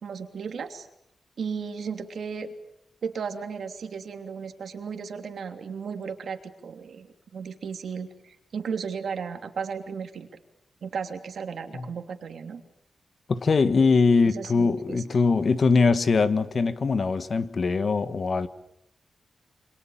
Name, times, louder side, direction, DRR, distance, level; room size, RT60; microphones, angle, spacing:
voice 1, 0.0-0.9 1.4-2.5 3.0-7.1 7.3-10.3 10.8-12.6 14.3-15.0, right 6 dB, 70° right, 3.1 m, -35 dB
voice 2, 13.3-18.5, left 4 dB, 45° left, 1.5 m, -22 dB
28.5 x 26.0 x 7.4 m
wide cardioid pair, 150°, 0 cm